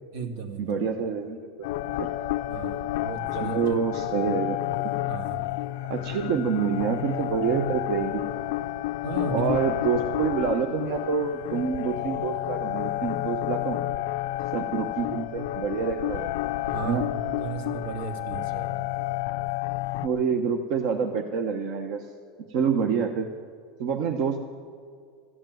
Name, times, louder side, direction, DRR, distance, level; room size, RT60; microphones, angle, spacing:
voice 1, 0.0-0.8 2.5-3.8 5.1-5.4 9.0-9.5 16.7-17.1 17.4-18.8, right 4 dB, 85° right, 3 dB, 2.2 m, -34 dB
voice 2, 0.6-1.7 2.0-2.1 3.4-4.6 5.9-8.2 9.3-13.8 14.5-16.3 16.8-17.1 20.0-22.1 22.5-23.3 23.8-24.4, right 6 dB, 60° right, 4 dB, 1.0 m, -27 dB
sound 1, 1.6-20.1, left 15 dB, 75° left, 0.4 m, -30 dB
14.0 x 8.7 x 9.2 m, 2.2 s
supercardioid pair, 125°, 0 cm